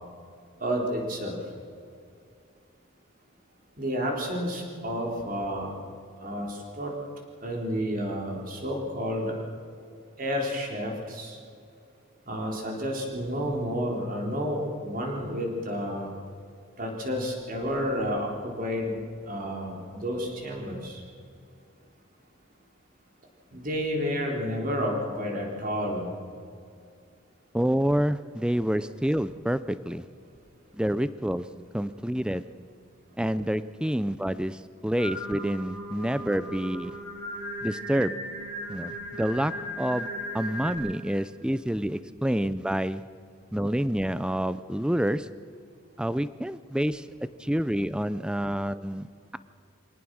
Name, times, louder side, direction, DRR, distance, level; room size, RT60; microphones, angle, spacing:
voice 1, 0.6-1.4 3.8-5.7 6.2-6.9 7.4-9.4 10.2-11.4 12.3-16.1 16.8-19.0 19.3-21.0 23.5-26.1, equal, 40° right, 0 dB, 4.0 m, -30 dB
voice 2, 27.5-30.0 30.7-32.5 33.2-37.0 37.6-38.3 38.7-43.1 43.5-45.3 46.0-47.1 47.4-49.1, equal, 5° right, 15 dB, 0.5 m, -28 dB
Singing, 35.0-40.8, equal, 90° right, 7.6 m, -37 dB
24.0 x 18.5 x 6.3 m, 2.4 s
head